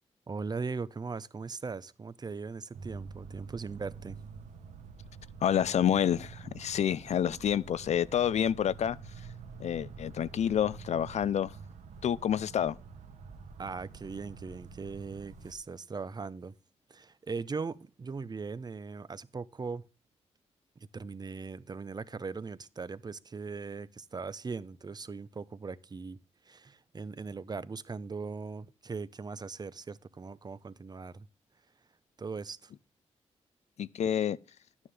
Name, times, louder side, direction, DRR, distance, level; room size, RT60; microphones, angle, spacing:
voice 1, 0.3-4.2 13.6-16.5 16.9-19.8 20.8-26.2 26.5-31.3 32.2-32.7, right 4 dB, 35° right, 0.8 m, -39 dB
sound 1, 2.7-15.5, right 5 dB, 85° right, 1.3 m, -47 dB
voice 2, 5.4-9.0 9.6-11.5 12.0-12.8 33.8-34.4, left 9 dB, 70° left, 0.5 m, -28 dB
11.0 x 9.8 x 3.4 m
cardioid pair, 80°, 12 cm